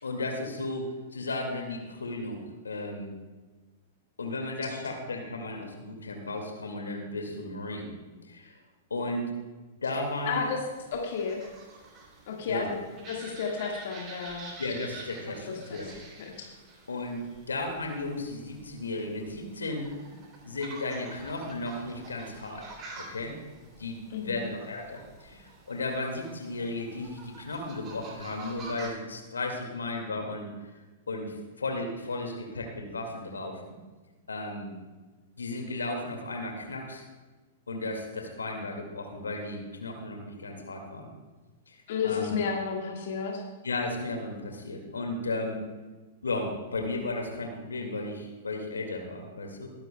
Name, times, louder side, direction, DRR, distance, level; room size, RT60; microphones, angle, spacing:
voice 1, 0.0-3.1 4.2-7.9 8.3-8.5 8.9-9.3 9.8-10.4 12.5-12.7 14.6-15.9 16.9-17.2 17.5-19.9 20.4-23.4 23.8-24.0 24.2-30.5 31.1-33.6 34.3-34.7 35.4-37.0 37.7-41.1 41.7-41.8 42.0-42.4 43.6-45.6 46.2-49.7, left 2 dB, 80° left, 2 dB, 2.0 m, -34 dB
sound 1, 10.0-28.9, right 3 dB, 30° right, 3.1 m, -48 dB
voice 2, 10.3-10.6 10.9-11.4 12.3-12.8 13.1-14.5 15.5-15.8 16.2-16.5 24.1-24.5 41.9-43.4, left 6 dB, 60° left, 0 dB, 1.7 m, -32 dB
20.5 x 10.5 x 2.2 m, 1.3 s
figure-of-eight pair, 105°, 0 cm